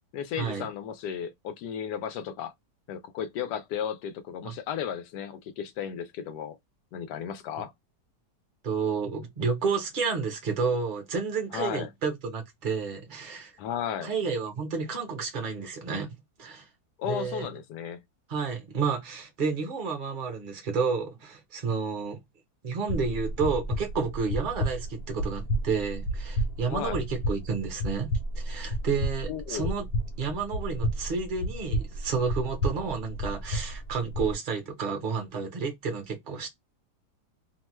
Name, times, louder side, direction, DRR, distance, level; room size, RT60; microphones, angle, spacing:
voice 1, 0.1-2.5 2.9-6.6 6.9-7.7 11.5-11.9 13.6-14.1 17.0-18.0 26.7-27.0 29.3-29.7, left 8 dB, 90° left, 1.2 m, -34 dB
voice 2, 8.6-13.5 14.0-16.7 17.0-17.5 18.3-22.2 22.6-29.9 30.2-36.5, right 5 dB, 40° right, 0.8 m, -31 dB
sound 1, 22.9-34.3, equal, 70° left, 1.1 m, -32 dB
3.0 x 2.2 x 3.0 m
omnidirectional pair, 1.7 m